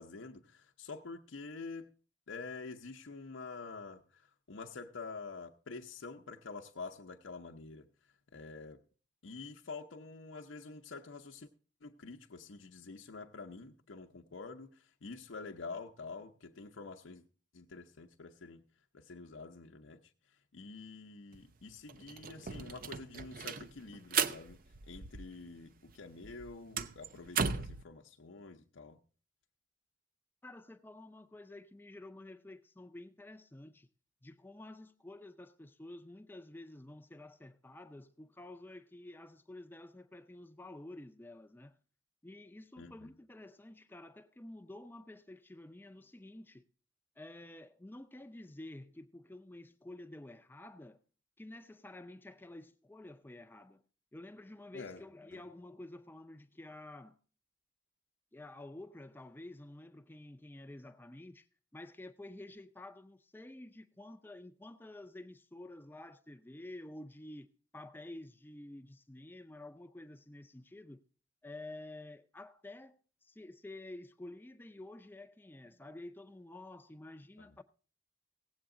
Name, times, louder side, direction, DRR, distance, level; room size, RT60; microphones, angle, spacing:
voice 1, 0.0-1.9 2.3-4.2 4.5-7.9 8.3-8.8 9.2-11.5 11.8-17.2 17.5-18.6 18.9-20.0 20.5-24.6 24.9-29.0 42.8-43.1 54.7-55.0 55.3-55.4, left 4 dB, 85° left, 0.7 m, -47 dB
sound 1, 21.3-21.4 21.7-25.6 25.9-27.8, right 6 dB, 50° right, 0.5 m, -37 dB
voice 2, 30.4-33.9 34.2-41.7 42.2-46.7 47.2-51.0 51.4-53.8 54.1-57.2 58.3-61.5 61.7-71.0 71.4-77.6, left 1 dB, 10° left, 0.5 m, -50 dB
17.0 x 8.0 x 3.7 m
head